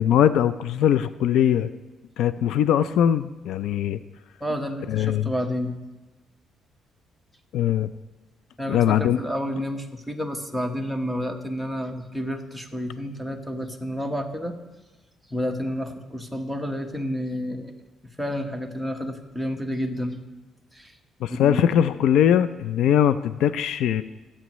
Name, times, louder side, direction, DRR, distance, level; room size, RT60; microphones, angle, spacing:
voice 1, 0.0-1.7 2.2-4.0 4.9-5.3 7.5-7.9 8.7-9.2 21.2-24.0, left 10 dB, 80° left, 13 dB, 0.4 m, -21 dB
voice 2, 4.4-5.7 8.6-14.6 15.3-17.7 18.2-20.2 20.7-21.0 21.3-21.7, equal, 5° left, 5 dB, 1.2 m, -30 dB
25.5 x 8.6 x 3.1 m, 1.1 s
cardioid pair, 120°, 0 cm